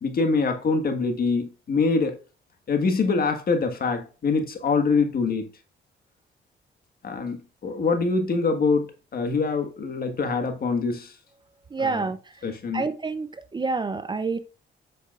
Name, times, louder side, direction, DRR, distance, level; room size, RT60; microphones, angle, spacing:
voice 1, 0.0-2.2 2.7-5.5 7.0-11.1 11.8-12.1 12.4-12.9, left 4 dB, 50° left, 1.5 m, -24 dB
voice 2, 11.7-12.2 12.7-13.3 13.5-14.4, right 4 dB, 25° right, 0.5 m, -27 dB
7.9 x 6.5 x 2.4 m
cardioid pair, 90°, 20 cm